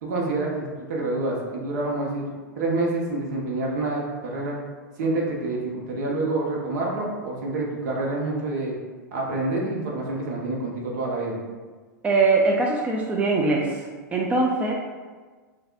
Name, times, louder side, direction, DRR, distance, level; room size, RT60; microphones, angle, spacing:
voice 1, 0.0-2.3 2.6-4.6 5.0-8.7 9.1-11.4, right 2 dB, 65° right, -2 dB, 1.1 m, -27 dB
voice 2, 12.0-13.8 14.1-14.7, right 3 dB, 15° right, -1 dB, 0.5 m, -21 dB
5.7 x 2.7 x 2.5 m, 1.4 s
hypercardioid pair, 105°, 10 cm